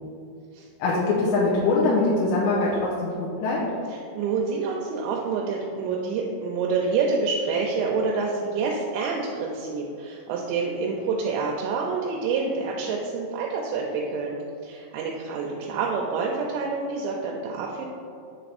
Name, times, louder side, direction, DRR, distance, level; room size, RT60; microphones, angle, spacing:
voice 1, 0.8-2.7 3.0-3.6, left 3 dB, 80° left, -6 dB, 2.9 m, -22 dB
voice 2, 3.9-14.4 14.6-17.9, right 4 dB, 85° right, -1 dB, 2.8 m, -27 dB
7.1 x 3.3 x 4.1 m, 2.4 s
omnidirectional pair, 5.2 m